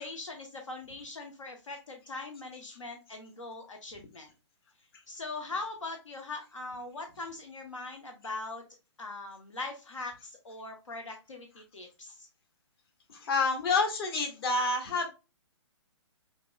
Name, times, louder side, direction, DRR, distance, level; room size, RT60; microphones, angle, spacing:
voice 1, 0.0-4.3 5.1-8.6 9.0-12.3, left 3 dB, 85° left, 3 dB, 0.9 m, -41 dB
voice 2, 13.1-15.1, left 3 dB, 50° left, 2 dB, 1.5 m, -28 dB
5.1 x 2.9 x 2.2 m, 0.29 s
hypercardioid pair, 135°, 16 cm